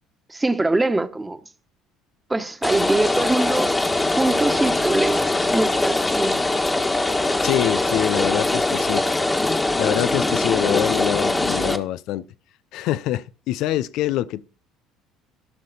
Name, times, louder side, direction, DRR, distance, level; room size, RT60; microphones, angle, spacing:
voice 1, 0.3-1.4 2.3-3.7 4.2-6.4, right 2 dB, 15° right, 1.4 m, -23 dB
Rain, 2.6-11.8, left 2 dB, 15° left, 1.6 m, -22 dB
voice 2, 7.4-9.1 9.8-12.3 12.7-14.4, left 13 dB, 65° left, 0.6 m, -25 dB
16.0 x 6.5 x 4.3 m
hypercardioid pair, 65°, 0 cm